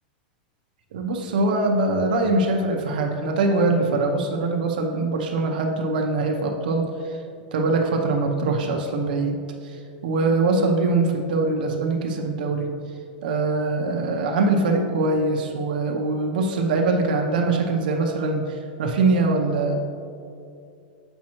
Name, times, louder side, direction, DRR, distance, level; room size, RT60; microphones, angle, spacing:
voice 1, 0.9-7.2 7.5-12.7 13.2-19.8, right 3 dB, 65° right, 2 dB, 0.7 m, -23 dB
7.4 x 5.3 x 3.0 m, 2.5 s
supercardioid pair, 180°, 5 cm